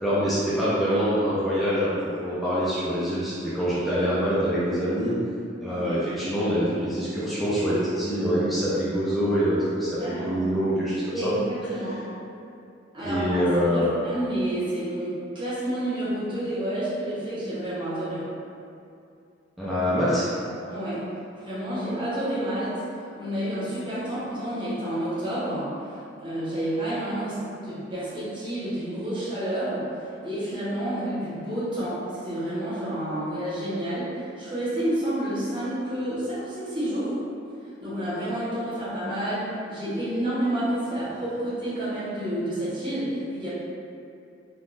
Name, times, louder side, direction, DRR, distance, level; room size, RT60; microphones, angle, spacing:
voice 1, 0.0-1.9 2.2-5.1 5.6-11.3 13.0-14.0 19.6-20.3, equal, ahead, -11 dB, 0.5 m, -25 dB
voice 2, 5.6-6.0 10.0-10.4 11.1-12.0 12.9-18.3 20.6-21.1 21.4-22.8 23.2-25.7 26.2-29.9 30.2-37.2 37.8-43.5, right 1 dB, 25° right, -13 dB, 1.1 m, -29 dB
3.5 x 2.5 x 2.5 m, 2.5 s
head